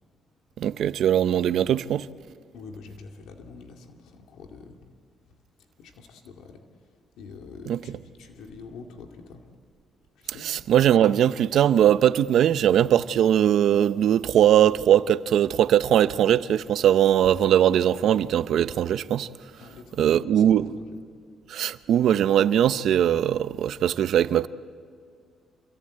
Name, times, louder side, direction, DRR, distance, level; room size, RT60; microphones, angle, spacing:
voice 1, 0.6-2.1 7.7-7.8 10.4-19.3 20.0-20.7 21.5-24.5, right 10 dB, 75° right, 0.7 m, -20 dB
voice 2, 2.5-4.8 5.3-5.4 5.8-9.5 10.2-10.5 19.6-21.0, left 4 dB, 85° left, 2.3 m, -45 dB
27.5 x 22.5 x 8.6 m
cardioid pair, 90°, 0 cm